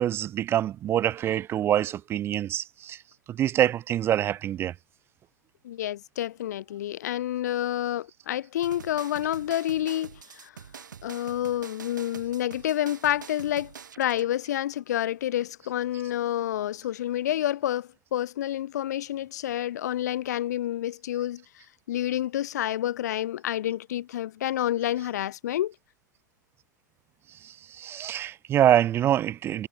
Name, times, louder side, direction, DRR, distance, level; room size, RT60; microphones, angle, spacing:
voice 1, 0.0-3.0 3.3-4.7 27.4-29.7, right 11 dB, 20° right, 0.5 m, -25 dB
voice 2, 5.6-10.5 11.0-21.4 21.9-25.7, left 12 dB, 55° left, 0.6 m, -29 dB
sound 1, 8.6-14.3, right 7 dB, 70° right, 1.2 m, -45 dB
figure-of-eight pair, 100°, 11 cm